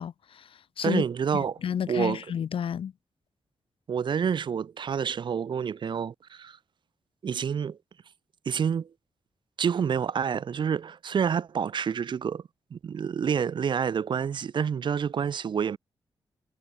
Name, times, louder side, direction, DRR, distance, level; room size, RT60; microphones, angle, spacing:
voice 1, 0.0-1.0 1.6-2.9, left 8 dB, 65° left, 0.9 m, -31 dB
voice 2, 0.8-1.6 1.9-2.2 3.9-6.6 7.2-7.8 8.5-8.9 9.6-12.4 12.7-15.8, right 7 dB, 55° right, 0.9 m, -28 dB
wide cardioid pair, 160°, 10 cm